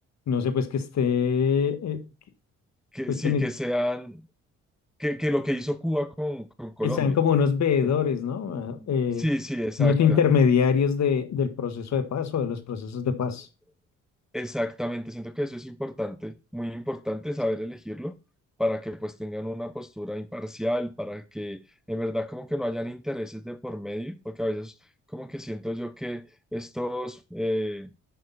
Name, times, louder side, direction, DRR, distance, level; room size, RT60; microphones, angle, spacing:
voice 1, 0.3-2.1 3.1-3.4 6.8-9.2 9.8-13.5, left 6 dB, 65° left, 1.7 m, -24 dB
voice 2, 2.9-4.2 5.0-7.2 7.8-7.9 8.5-10.2 14.3-18.2 18.6-24.7 25.1-26.3 26.5-27.9, equal, ahead, 0.7 m, -31 dB
9.9 x 6.5 x 4.2 m
cardioid pair, 90°, 30 cm